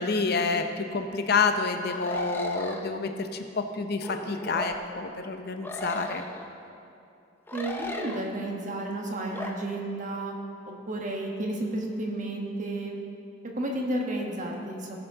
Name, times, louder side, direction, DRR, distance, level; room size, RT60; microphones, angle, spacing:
voice 1, 0.0-6.2, left 4 dB, 55° left, 6 dB, 0.8 m, -28 dB
sound 1, 1.9-2.9 4.0-4.8 5.6-6.5 7.5-8.3 9.3-9.5, left 1 dB, 10° left, 0.7 m, -36 dB
voice 2, 7.5-10.3 10.7-13.0 13.6-15.0, right 1 dB, 40° right, 0 dB, 1.4 m, -32 dB
17.0 x 6.9 x 3.9 m, 2.6 s
head